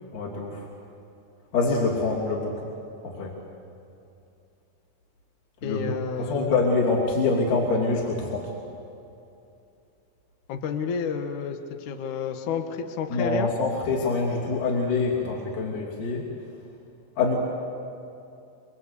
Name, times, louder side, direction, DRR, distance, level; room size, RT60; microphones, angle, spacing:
voice 1, 0.1-0.7 1.5-2.6 3.0-3.4 5.6-8.5 13.1-16.3 17.2-17.3, left 3 dB, 50° left, -3 dB, 4.1 m, -25 dB
voice 2, 5.6-6.5 10.5-13.5, left 6 dB, 65° left, 5 dB, 2.0 m, -30 dB
26.0 x 23.5 x 8.2 m, 2.7 s
omnidirectional pair, 5.3 m